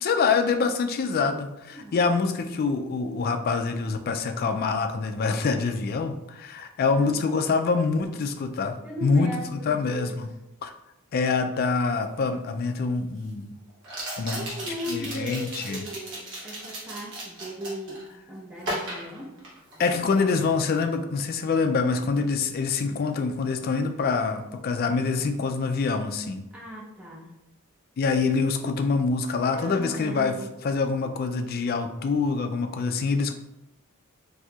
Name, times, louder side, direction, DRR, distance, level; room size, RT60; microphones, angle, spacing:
voice 1, 0.0-10.3 10.6-10.7 11.1-13.5 14.2-14.4 14.9-15.8 19.8-26.4 28.0-30.3 30.6-33.3, left 4 dB, 45° left, 7 dB, 0.3 m, -25 dB
voice 2, 6.8-7.2 8.8-10.1 14.3-18.0 18.3-19.4 26.5-27.3 29.5-30.5, equal, 5° right, -3 dB, 0.7 m, -37 dB
sound 1, 12.1-12.2 13.8-18.0 18.6-19.9 20.2-20.5, right 1 dB, 55° right, 1.2 m, -36 dB
4.2 x 2.7 x 2.3 m, 0.91 s
head